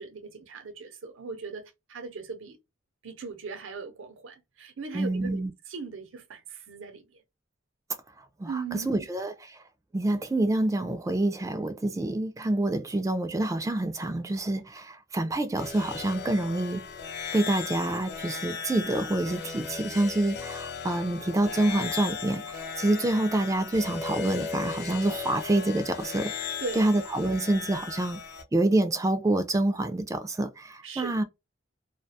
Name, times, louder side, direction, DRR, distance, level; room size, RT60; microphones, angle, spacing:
voice 1, 0.0-1.6 1.9-2.6 3.0-7.2 8.4-9.0 26.6-26.9 30.8-31.1, right 4 dB, 90° right, 0.6 m, -39 dB
voice 2, 4.9-5.5 8.4-9.6 9.9-16.9 17.3-28.2 28.5-31.2, right 1 dB, 15° right, 0.3 m, -27 dB
sound 1, 15.6-28.4, left 6 dB, 60° left, 0.5 m, -37 dB
2.3 x 2.2 x 2.6 m
head